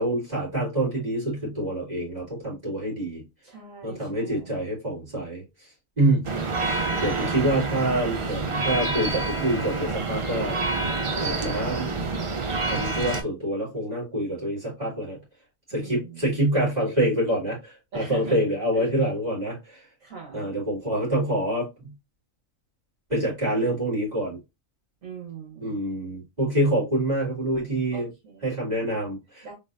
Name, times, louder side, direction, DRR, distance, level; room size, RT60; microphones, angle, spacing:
voice 1, 0.0-3.2 3.8-5.4 6.0-6.3 6.6-10.6 11.2-11.9 12.6-15.2 15.7-19.8 20.3-21.9 23.1-24.4 25.6-28.1 28.4-29.5, right 1 dB, 30° right, 2.7 m, -26 dB
voice 2, 3.4-4.7 15.7-16.2 17.9-18.4 18.7-18.9 20.0-20.5 25.0-25.8 27.9-28.8 29.4-29.5, right 6 dB, 70° right, 1.9 m, -41 dB
sound 1, 6.2-13.2, right 3 dB, 55° right, 0.3 m, -27 dB
4.1 x 3.3 x 2.5 m
omnidirectional pair, 1.4 m